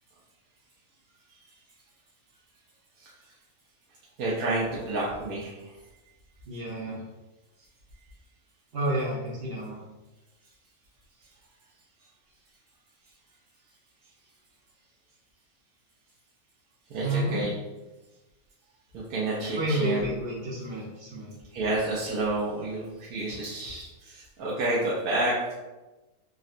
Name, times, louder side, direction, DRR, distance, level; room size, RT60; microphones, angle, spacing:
voice 1, 4.2-5.5 16.9-17.5 18.9-20.1 21.5-25.5, right 2 dB, 80° right, -6 dB, 1.1 m, -29 dB
voice 2, 6.4-7.0 8.7-9.8 17.0-17.4 19.5-21.4, right 1 dB, 55° right, -4 dB, 0.8 m, -30 dB
3.7 x 2.1 x 2.4 m, 1.1 s
omnidirectional pair, 1.5 m